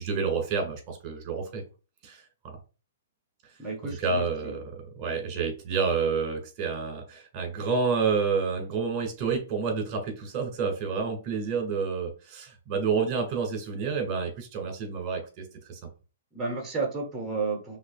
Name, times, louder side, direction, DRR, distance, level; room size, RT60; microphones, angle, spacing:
voice 1, 0.0-1.6 2.0-2.6 3.8-4.7 5.0-15.8, right 5 dB, 30° right, 3 dB, 1.8 m, -29 dB
voice 2, 3.6-4.5 16.3-17.8, right 4 dB, 15° right, 1 dB, 1.2 m, -32 dB
6.0 x 2.7 x 2.4 m, 0.33 s
figure-of-eight pair, 115°, 0 cm